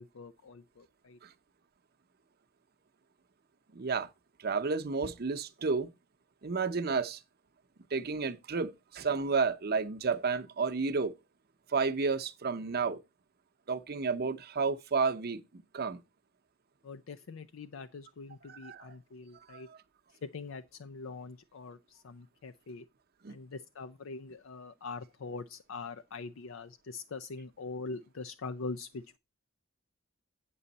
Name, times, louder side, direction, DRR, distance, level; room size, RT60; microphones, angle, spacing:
voice 1, 0.0-1.2 16.8-19.7 20.2-22.9 23.3-29.2, left 4 dB, 75° left, 0.5 m, -43 dB
voice 2, 3.7-4.1 4.4-5.9 6.4-7.2 7.9-11.1 11.7-13.0 13.7-16.0 18.5-18.9 19.5-19.6 23.2-23.4, right 4 dB, 50° right, 0.7 m, -31 dB
8.7 x 6.9 x 4.0 m
head